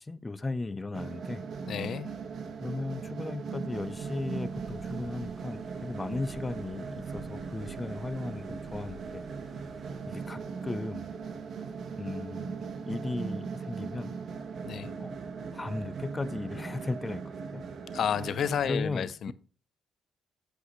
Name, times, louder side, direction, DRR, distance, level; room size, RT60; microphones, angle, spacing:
voice 1, 0.0-1.4 2.6-9.2 10.1-11.1 12.0-14.1 15.0-15.2 15.5-17.2 17.5-17.6 18.6-19.3, left 3 dB, 20° left, 16 dB, 0.6 m, -36 dB
sound 1, 0.9-18.7, right 5 dB, 60° right, 1.3 m, -39 dB
voice 2, 1.7-2.1 14.6-14.9 17.9-19.3, left 8 dB, 65° left, 16 dB, 0.6 m, -31 dB
sound 2, 3.7-12.7, right 4 dB, 45° right, 2.2 m, -53 dB
8.2 x 7.9 x 3.2 m, 0.39 s
cardioid pair, 90°, 0 cm